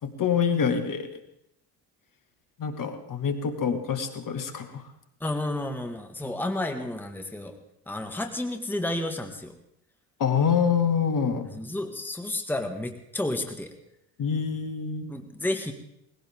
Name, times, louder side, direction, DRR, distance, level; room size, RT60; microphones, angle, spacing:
voice 1, 0.0-1.1 2.6-4.8 10.2-11.5 14.2-15.1, left 7 dB, 40° left, 7 dB, 2.0 m, -26 dB
voice 2, 5.2-7.6 7.9-9.5 11.5-13.7 15.1-15.7, left 1 dB, 5° left, 5 dB, 1.7 m, -31 dB
20.0 x 16.0 x 3.7 m, 0.76 s
hypercardioid pair, 65°, 47 cm